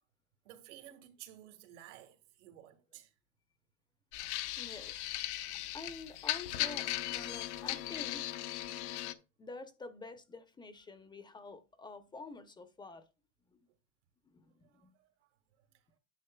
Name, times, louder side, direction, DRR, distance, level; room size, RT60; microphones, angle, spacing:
voice 1, 0.5-3.1 14.7-15.1, right 12 dB, 80° right, 1.8 m, -54 dB
sound 1, 4.1-9.1, left 15 dB, 70° left, 0.9 m, -38 dB
voice 2, 4.6-5.1 5.5-8.2 9.4-13.0 13.5-13.6 14.3-14.9, left 3 dB, 15° left, 0.7 m, -48 dB
9.9 x 7.3 x 2.2 m
supercardioid pair, 140°, 35 cm